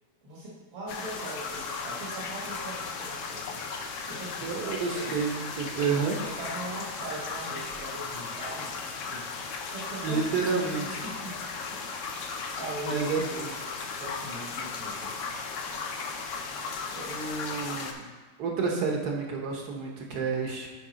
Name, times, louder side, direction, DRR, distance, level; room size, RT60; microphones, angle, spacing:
voice 1, 0.2-3.6 4.1-5.1 5.8-5.9 6.2-9.3 9.7-11.4 11.7-11.8 12.1-15.2 16.9-17.2, right 2 dB, 75° right, -7 dB, 2.2 m, -41 dB
sound 1, 0.9-17.9, left 4 dB, 80° left, 0.6 m, -36 dB
voice 2, 4.4-6.2 10.0-10.9 12.8-13.5 17.1-18.0 18.4-20.7, right 5 dB, 60° right, 0 dB, 1.3 m, -30 dB
9.4 x 3.5 x 5.0 m, 1.4 s
omnidirectional pair, 2.1 m